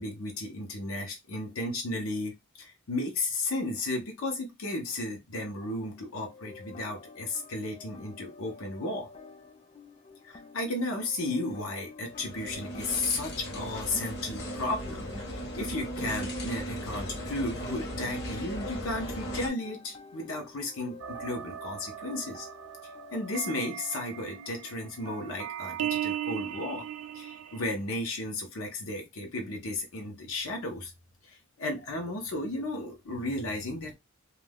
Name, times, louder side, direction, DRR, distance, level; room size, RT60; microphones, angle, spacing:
voice 1, 0.0-2.3 2.6-9.1 10.2-22.5 23.1-26.9 27.1-30.9 31.2-33.9, left 2 dB, 90° left, 0.7 m, -34 dB
sound 1, 5.6-23.4, left 4 dB, 30° left, 0.3 m, -50 dB
sound 2, 12.1-19.5, equal, 55° left, 0.9 m, -37 dB
sound 3, 21.0-27.6, right 11 dB, 90° right, 0.3 m, -37 dB
2.4 x 2.2 x 3.4 m
head